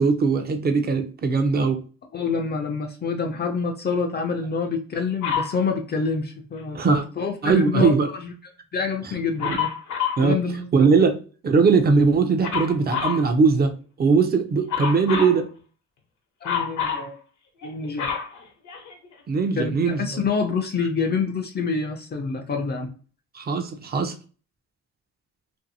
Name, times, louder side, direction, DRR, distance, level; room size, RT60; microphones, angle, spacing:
voice 1, 0.0-1.8 6.7-7.0 7.4-8.1 9.5-9.6 10.2-10.4 10.7-11.2 11.4-15.5 19.3-20.2 23.3-24.1, right 4 dB, 30° right, 6 dB, 0.5 m, -20 dB
voice 2, 2.1-7.9 8.2-8.3 8.7-9.7 10.2-10.7 11.0-11.1 16.4-17.1 17.6-18.1 19.6-22.9, left 5 dB, 35° left, 3 dB, 0.4 m, -27 dB
Dog, 5.2-5.6 9.4-10.3 12.4-13.2 14.7-15.4 16.4-17.1 17.6-19.1 19.9-20.0, left 7 dB, 70° left, 0.8 m, -27 dB
2.7 x 2.5 x 2.6 m, 0.39 s
cardioid pair, 90°, 30 cm